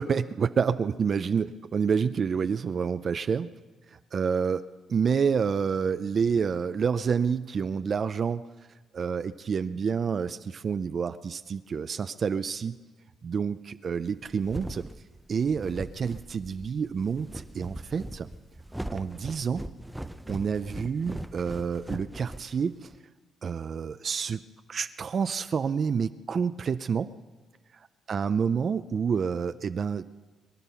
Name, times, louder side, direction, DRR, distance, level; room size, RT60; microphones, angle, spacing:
voice 1, 0.0-3.5 3.9-8.4 8.9-12.8 13.2-14.9 15.3-18.3 18.9-19.6 20.3-22.9 23.4-24.4 24.7-27.1 27.7-30.1, right 6 dB, 50° right, 11 dB, 0.5 m, -28 dB
sound 1, 14.0-23.0, right 1 dB, 5° right, 0.7 m, -40 dB
23.5 x 11.0 x 5.7 m, 1.3 s
cardioid pair, 90°, 0 cm